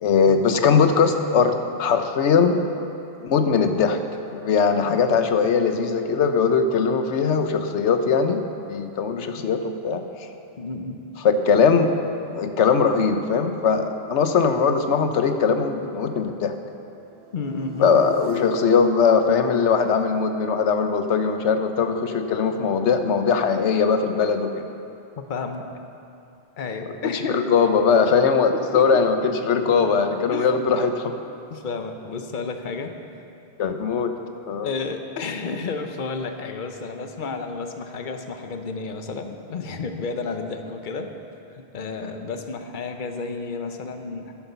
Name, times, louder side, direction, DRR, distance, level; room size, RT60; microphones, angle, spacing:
voice 1, 0.0-2.6 3.2-4.0 4.3-10.0 11.2-11.9 12.3-16.5 17.8-24.7 27.3-31.2 33.6-34.1 34.5-34.7, left 5 dB, 80° left, 7 dB, 1.1 m, -20 dB
voice 2, 10.6-11.0 17.3-17.9 25.2-25.6 26.6-27.4 28.7-29.0 30.3-30.5 31.5-32.9 34.6-41.1 41.5-44.3, left 4 dB, 50° left, 6 dB, 0.9 m, -31 dB
sound 1, 17.1-21.2, right 4 dB, 60° right, 1.2 m, -41 dB
10.5 x 9.6 x 6.8 m, 2.6 s
omnidirectional pair, 1.2 m